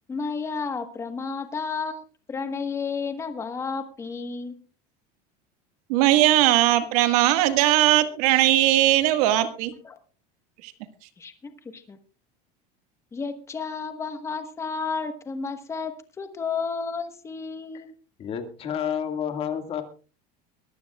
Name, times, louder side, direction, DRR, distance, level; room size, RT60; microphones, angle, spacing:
voice 1, 0.1-2.0 2.3-4.5 9.8-10.0 11.2-12.0 13.1-17.9, left 5 dB, 15° left, 8 dB, 1.3 m, -32 dB
voice 2, 5.9-9.7 10.6-10.7, right 14 dB, 75° right, 9 dB, 1.7 m, -19 dB
voice 3, 18.2-19.8, left 8 dB, 30° left, 6 dB, 2.0 m, -30 dB
22.5 x 15.0 x 2.4 m, 0.36 s
cardioid pair, 165°, 19 cm